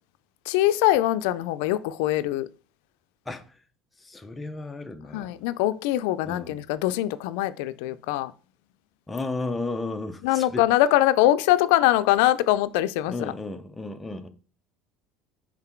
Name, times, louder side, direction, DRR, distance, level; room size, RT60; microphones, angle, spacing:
voice 1, 0.5-2.5 5.1-8.3 10.2-13.3, left 14 dB, 80° left, 0.3 m, -23 dB
voice 2, 3.3-3.6 4.0-5.4 6.2-6.6 9.1-10.6 13.1-14.3, left 2 dB, 10° left, 0.6 m, -34 dB
5.9 x 3.7 x 4.4 m
cardioid pair, 145°, 0 cm